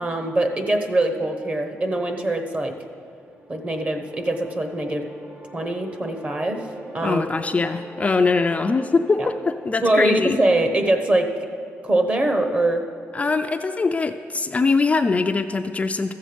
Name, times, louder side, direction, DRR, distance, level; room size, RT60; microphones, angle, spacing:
voice 1, 0.0-2.7 3.5-5.1 5.5-6.7 6.9-7.2 9.2-9.3 9.8-11.3 11.8-12.8, right 1 dB, 30° right, 5 dB, 1.1 m, -22 dB
sound 1, 2.9-11.9, right 2 dB, 60° right, 2.6 m, -43 dB
voice 2, 7.0-10.4 13.1-16.1, left 4 dB, 30° left, 7 dB, 0.4 m, -22 dB
13.5 x 7.6 x 5.1 m, 2.3 s
cardioid pair, 105°, 5 cm